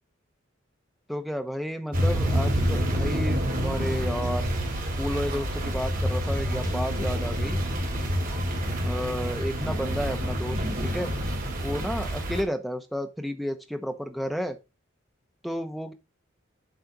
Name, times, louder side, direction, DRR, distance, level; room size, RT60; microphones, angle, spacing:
voice 1, 1.1-4.5 5.0-7.6 8.8-11.1 11.6-14.6 15.4-15.9, equal, ahead, 6 dB, 1.0 m, -32 dB
sound 1, 1.9-12.4, equal, 45° right, 2.4 m, -27 dB
7.9 x 4.3 x 6.0 m, 0.27 s
head